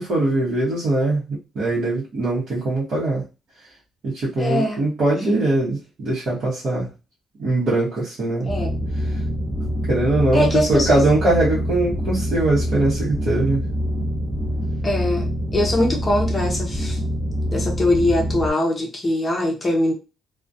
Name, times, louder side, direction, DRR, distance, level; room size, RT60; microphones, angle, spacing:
voice 1, 0.0-3.2 4.0-6.9 7.4-8.5 9.9-13.6, right 2 dB, 50° right, -8 dB, 0.9 m, -21 dB
voice 2, 4.4-4.8 8.4-8.9 10.3-11.0 14.8-17.0 17.5-19.9, left 1 dB, 20° left, 0 dB, 0.6 m, -22 dB
sound 1, 8.4-18.5, equal, 25° right, 0.6 m, -25 dB
2.3 x 2.1 x 2.6 m, 0.30 s
cardioid pair, 140°, 0 cm